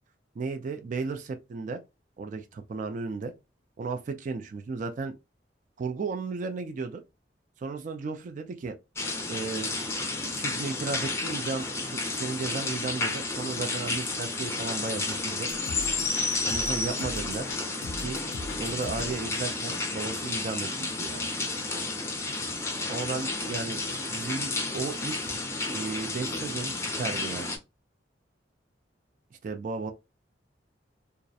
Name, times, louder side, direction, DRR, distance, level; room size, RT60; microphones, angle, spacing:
voice 1, 0.4-1.8 2.2-3.3 3.8-5.2 5.8-7.0 7.6-8.7 9.3-9.7 10.2-15.5 16.4-17.5 18.0-18.2 18.6-21.3 22.9-23.8 24.1-25.4 25.7-27.6 29.3-29.9, right 4 dB, 45° right, 0.3 m, -34 dB
sound 1, 9.0-27.6, left 3 dB, 15° left, 0.5 m, -31 dB
sound 2, 15.5-19.3, left 3 dB, 90° left, 0.4 m, -40 dB
2.3 x 2.0 x 2.6 m
head